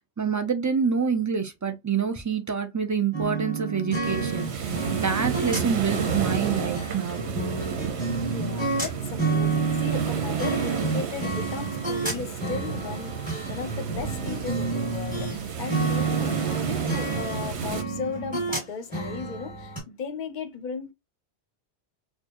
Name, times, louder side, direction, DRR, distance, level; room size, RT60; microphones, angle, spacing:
voice 1, 0.2-4.8 5.0-7.2, right 6 dB, 25° right, 0.4 m, -27 dB
sound 1, 3.1-15.4 15.7-19.8, right 4 dB, 5° right, 2.3 m, -30 dB
sound 2, 4.0-17.8, right 7 dB, 75° right, 1.1 m, -31 dB
voice 2, 7.8-20.9, left 6 dB, 50° left, 0.8 m, -36 dB
4.3 x 2.3 x 2.9 m
omnidirectional pair, 1.1 m